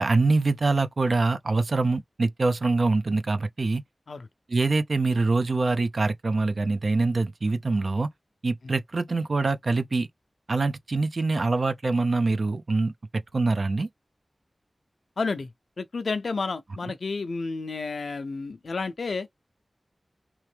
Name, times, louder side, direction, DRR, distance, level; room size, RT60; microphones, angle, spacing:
voice 1, 0.0-3.8 4.5-8.1 8.4-10.1 10.5-13.9, right 3 dB, 70° right, 0.5 m, -24 dB
voice 2, 15.2-19.3, left 4 dB, 85° left, 0.5 m, -31 dB
3.4 x 3.1 x 3.3 m
wide cardioid pair, 50°, 0 cm